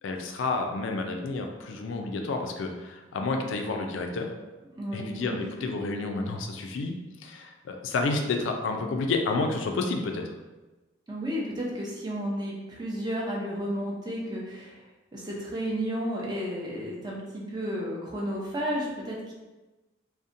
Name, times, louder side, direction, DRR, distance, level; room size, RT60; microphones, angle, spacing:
voice 1, 0.0-4.3 4.9-6.9 7.2-10.3, left 3 dB, 80° left, 4 dB, 0.3 m, -30 dB
voice 2, 4.7-5.4 11.1-14.8 15.1-19.3, equal, 20° right, -4 dB, 0.4 m, -32 dB
2.7 x 2.1 x 2.5 m, 1.1 s
head